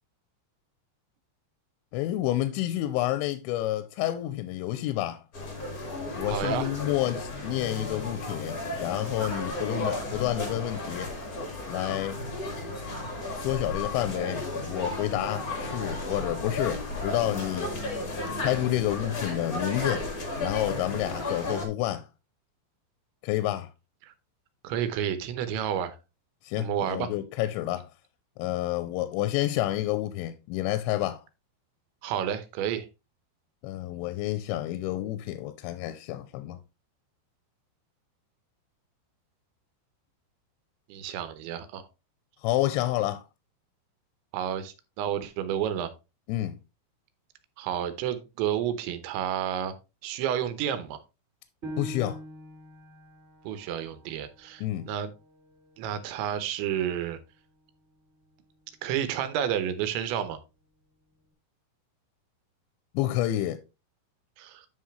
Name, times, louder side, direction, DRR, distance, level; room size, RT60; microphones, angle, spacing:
voice 1, 1.9-5.2 6.2-11.1 11.7-12.2 13.4-17.7 18.4-20.1 20.4-22.1 23.2-23.7 26.4-27.9 28.4-31.2 33.6-36.6 42.4-43.2 46.3-46.6 51.8-52.2 54.6-54.9 62.9-63.6, left 14 dB, 90° left, 2.9 m, -29 dB
sound 1, 5.3-21.7, left 2 dB, 60° left, 0.9 m, -34 dB
voice 2, 6.3-6.7 24.0-24.1 24.6-26.0 26.6-27.1 32.0-32.9 40.9-41.9 44.3-45.9 47.6-49.7 50.0-51.0 53.4-55.1 55.8-57.2 58.8-60.4 64.4-64.7, right 9 dB, 80° right, 3.2 m, -30 dB
Piano, 51.6-56.8 57.3-57.4 58.0-58.5, right 1 dB, 20° right, 2.2 m, -45 dB
9.4 x 5.9 x 3.2 m
omnidirectional pair, 5.2 m